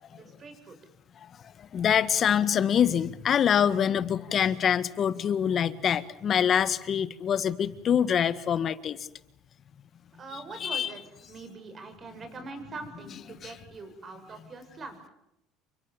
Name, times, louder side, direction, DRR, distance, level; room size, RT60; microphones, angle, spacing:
voice 1, 0.1-0.8 10.2-11.0 11.3-15.0, right 3 dB, 30° right, 7 dB, 7.5 m, -43 dB
voice 2, 1.6-9.0 10.6-10.9 13.4-13.5, left 8 dB, 40° left, 14 dB, 1.6 m, -25 dB
29.0 x 24.5 x 7.2 m, 0.82 s
supercardioid pair, 115°, 0 cm